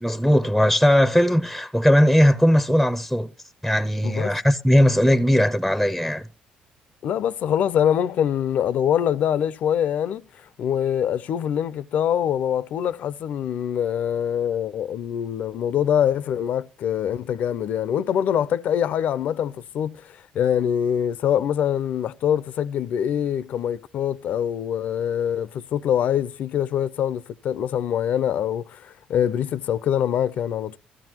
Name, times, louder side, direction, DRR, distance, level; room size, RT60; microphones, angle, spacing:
voice 1, 0.0-3.3 3.6-6.3, equal, ahead, 0.6 m, -18 dB
voice 2, 4.0-4.4 7.0-10.2 10.6-30.8, left 9 dB, 65° left, 0.6 m, -24 dB
15.0 x 13.5 x 2.9 m
supercardioid pair, 80°, 3 cm